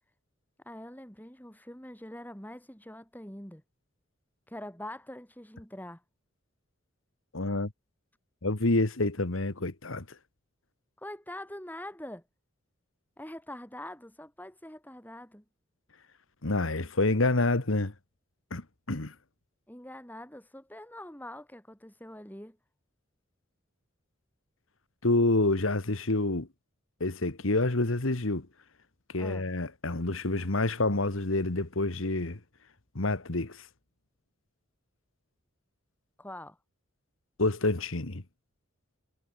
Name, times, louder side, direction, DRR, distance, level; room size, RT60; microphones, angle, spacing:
voice 1, 0.6-3.6 4.5-6.0 11.0-12.2 13.2-15.4 19.7-22.6 29.2-29.5 36.2-36.6, left 1 dB, 10° left, 6.6 m, -44 dB
voice 2, 7.3-7.7 8.4-10.1 16.4-17.9 18.5-19.1 25.0-26.5 27.0-28.5 29.1-32.4 33.0-33.7 37.4-38.2, left 2 dB, 80° left, 1.7 m, -28 dB
head